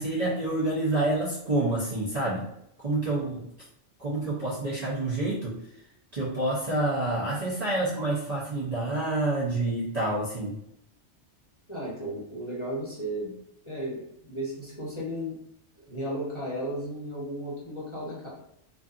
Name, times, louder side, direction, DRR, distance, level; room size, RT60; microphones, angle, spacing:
voice 1, 0.0-2.5 2.8-3.5 4.0-5.6 6.1-10.6, right 2 dB, 40° right, -8 dB, 0.7 m, -28 dB
voice 2, 11.7-13.3 13.7-15.4 15.9-18.3, equal, 30° left, -7 dB, 0.8 m, -34 dB
2.6 x 2.5 x 2.4 m, 0.77 s
omnidirectional pair, 1.2 m